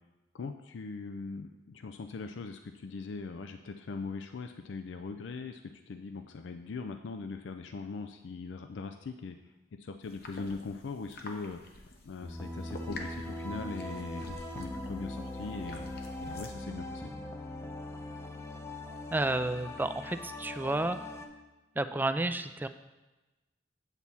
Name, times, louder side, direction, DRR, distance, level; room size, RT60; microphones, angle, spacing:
voice 1, 0.3-9.4 9.8-15.9 16.2-17.1, left 4 dB, 75° left, 7 dB, 0.4 m, -41 dB
sound 1, 10.0-16.6, left 2 dB, 55° left, 0.9 m, -49 dB
sound 2, 12.2-21.3, left 1 dB, 15° left, 0.7 m, -41 dB
voice 2, 19.1-21.0 21.8-22.7, right 2 dB, 10° right, 10 dB, 0.3 m, -31 dB
8.1 x 4.1 x 7.1 m, 1.1 s
head